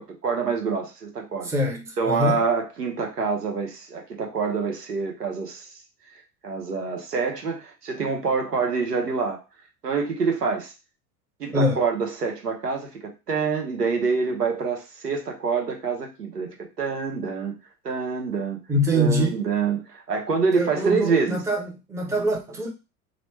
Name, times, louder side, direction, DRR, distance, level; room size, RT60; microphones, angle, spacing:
voice 1, 0.0-1.5 2.0-5.7 6.4-9.4 9.8-10.7 11.4-17.5 17.8-18.6 18.9-21.4, right 5 dB, 90° right, 0.9 m, -26 dB
voice 2, 1.4-2.4 11.5-11.8 18.7-19.4 20.5-22.7, equal, 5° right, 0.6 m, -24 dB
3.0 x 2.1 x 3.1 m
figure-of-eight pair, 85°, 46 cm